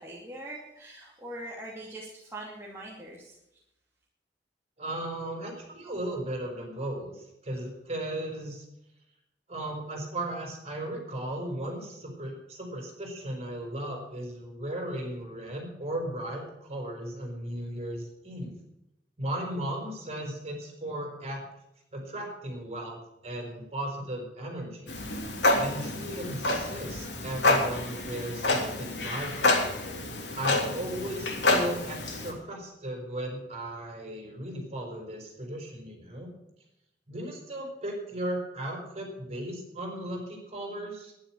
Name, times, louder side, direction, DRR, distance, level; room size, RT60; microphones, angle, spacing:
voice 1, 0.0-3.4, right 1 dB, 15° right, -5 dB, 2.6 m, -42 dB
voice 2, 4.8-8.6 9.5-18.5 19.2-21.4 21.9-24.9 25.6-29.5 30.3-36.3 37.1-41.1, right 1 dB, 40° right, 1 dB, 5.1 m, -36 dB
Clock, 24.9-32.3, left 2 dB, 85° left, 3.1 m, -28 dB
12.0 x 10.5 x 7.7 m, 0.85 s
head